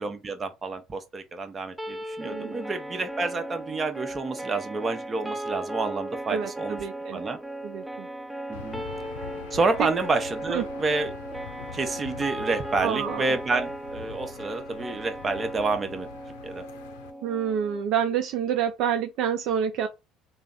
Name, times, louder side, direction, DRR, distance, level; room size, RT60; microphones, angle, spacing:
voice 1, 0.0-6.8 7.1-7.4 8.5-8.8 9.5-11.1 11.7-16.1 16.4-16.6, right 3 dB, 35° right, 0.8 m, -29 dB
sound 1, 1.8-17.8, right 1 dB, 5° right, 0.4 m, -36 dB
voice 2, 2.2-2.6 6.3-7.2 7.6-8.1 9.8-9.9 10.5-10.6 12.8-13.3 17.2-19.9, right 8 dB, 65° right, 0.4 m, -28 dB
Aircraft / Engine, 8.5-17.1, left 7 dB, 85° left, 0.5 m, -44 dB
3.3 x 2.0 x 3.8 m
hypercardioid pair, 65°, 0 cm